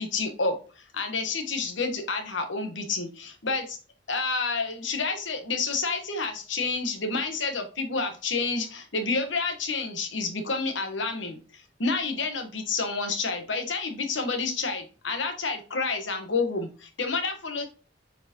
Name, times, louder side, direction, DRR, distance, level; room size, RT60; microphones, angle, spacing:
voice 1, 0.0-3.8 4.1-17.7, left 4 dB, 85° left, 6 dB, 1.2 m, -29 dB
6.7 x 4.7 x 3.0 m, 0.36 s
head